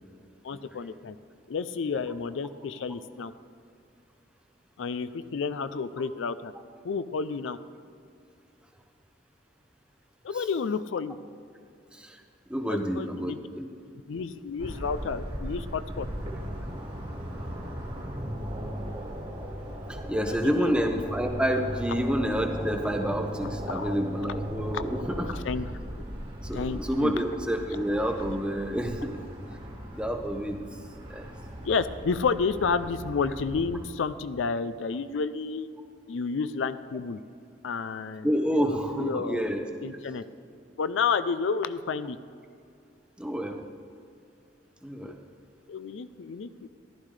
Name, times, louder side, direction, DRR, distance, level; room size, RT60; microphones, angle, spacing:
voice 1, 0.4-1.2 1.5-3.3 4.8-6.5 6.8-7.6 10.2-11.2 12.7-13.4 14.1-16.1 20.2-20.7 23.7-23.9 24.7-24.8 25.3-25.6 26.5-27.2 31.6-35.7 36.1-37.2 37.6-39.4 39.8-40.2 40.8-42.2 45.0-45.1 45.7-46.7, left 5 dB, 85° left, 13 dB, 0.4 m, -30 dB
voice 2, 12.5-13.7 19.9-25.3 26.4-29.2 29.9-30.6 31.1-31.3 38.2-40.0 43.2-43.6 44.8-45.2, equal, 5° right, 4 dB, 0.7 m, -29 dB
sound 1, 14.6-33.9, equal, 25° right, 1.6 m, -37 dB
15.0 x 11.5 x 3.3 m, 2.4 s
head